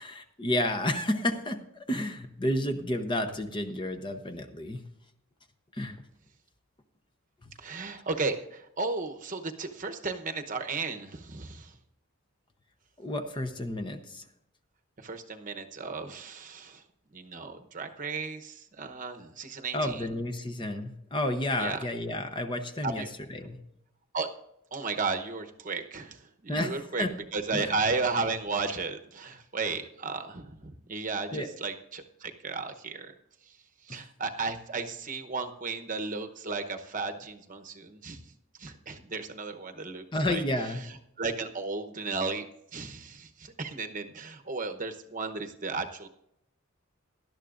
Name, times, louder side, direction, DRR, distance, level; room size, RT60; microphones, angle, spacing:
voice 1, 0.0-4.8 5.7-6.0 7.4-7.5 13.0-14.2 19.7-23.6 26.5-27.1 27.5-27.7 31.3-31.5 33.9-34.0 40.1-40.8, left 1 dB, 20° left, 8 dB, 0.8 m, -31 dB
voice 2, 7.6-11.7 15.0-16.8 17.1-20.1 21.6-21.8 22.8-23.1 24.1-24.3 24.7-27.1 27.3-33.1 33.5-33.6 33.8-38.2 38.6-40.4 40.8-42.5 42.7-46.1, right 4 dB, 35° right, 6 dB, 0.9 m, -34 dB
18.5 x 12.0 x 2.5 m, 0.78 s
head